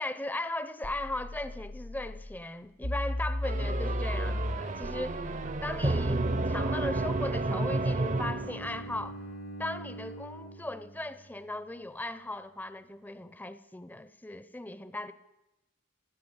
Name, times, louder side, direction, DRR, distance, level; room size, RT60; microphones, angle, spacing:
voice 1, 0.0-9.2 9.6-15.1, left 1 dB, 10° left, 13 dB, 0.6 m, -38 dB
sound 1, 0.8-2.3 2.8-6.3, left 1 dB, 90° left, 2.5 m, -35 dB
sound 2, 3.4-9.0, right 2 dB, 40° right, 0.7 m, -31 dB
Bowed string instrument, 7.5-11.6, right 1 dB, 70° left, 1.6 m, -45 dB
16.0 x 10.0 x 8.7 m, 0.96 s
head